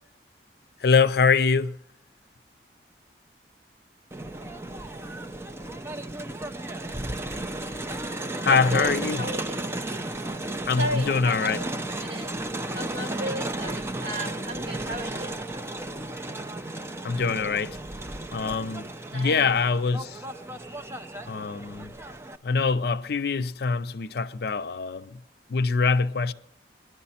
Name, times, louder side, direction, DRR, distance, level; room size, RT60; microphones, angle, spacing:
voice 1, 0.8-1.8 8.4-9.2 10.6-11.6 17.0-17.8 18.3-18.9 19.1-20.2 21.3-21.9 22.4-25.2 25.5-26.3, left 5 dB, 60° left, 0.5 m, -24 dB
Crowd, 4.1-22.4, right 2 dB, 15° right, 0.5 m, -34 dB
voice 2, 8.4-9.5 10.8-12.3 12.7-15.3 19.1-19.6, equal, 65° right, 1.7 m, -34 dB
21.0 x 11.0 x 4.2 m
head